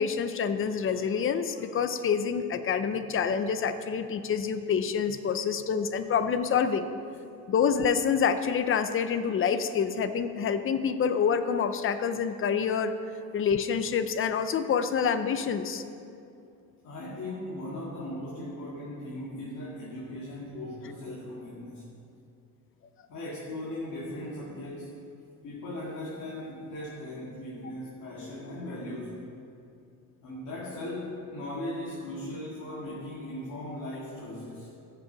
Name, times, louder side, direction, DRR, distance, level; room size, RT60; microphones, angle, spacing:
voice 1, 0.0-6.9 7.5-12.9 13.3-15.8, left 6 dB, 35° left, 10 dB, 0.6 m, -27 dB
voice 2, 16.8-21.9 23.1-25.0 25.4-29.2 30.2-34.7, left 1 dB, 50° left, -5 dB, 2.1 m, -38 dB
14.5 x 6.7 x 5.1 m, 2.5 s
cardioid pair, 135°, 36 cm